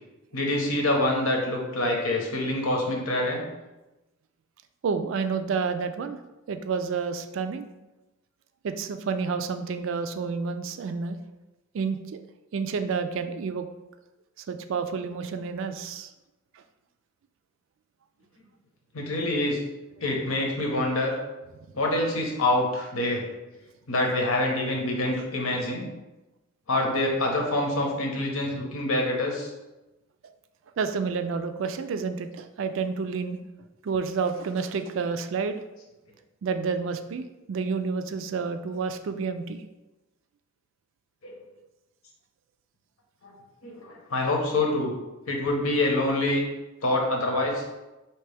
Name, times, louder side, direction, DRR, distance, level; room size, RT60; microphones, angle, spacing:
voice 1, 0.3-3.4 18.9-19.6 20.0-21.1 21.7-23.2 23.9-25.8 26.7-29.5 41.2-41.4 43.2-43.3 43.6-44.9 45.3-46.4 46.8-47.6, left 1 dB, 85° left, 1 dB, 0.9 m, -26 dB
voice 2, 4.8-6.2 6.5-7.7 8.6-11.2 11.7-12.2 12.5-13.7 14.5-16.1 30.8-33.4 33.8-35.6 36.4-39.6, right 5 dB, 70° right, 9 dB, 0.3 m, -29 dB
4.4 x 2.9 x 3.4 m, 1.0 s
head